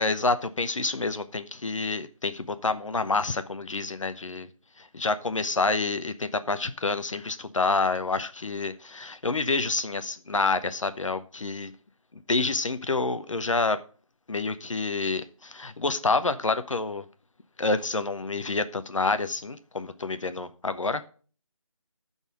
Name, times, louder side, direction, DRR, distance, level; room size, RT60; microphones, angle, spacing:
voice 1, 0.0-4.5 4.8-11.7 12.1-13.8 14.3-17.0 17.6-21.1, left 3 dB, 65° left, 11 dB, 0.8 m, -28 dB
11.0 x 4.1 x 6.1 m, 0.40 s
figure-of-eight pair, 165°, 18 cm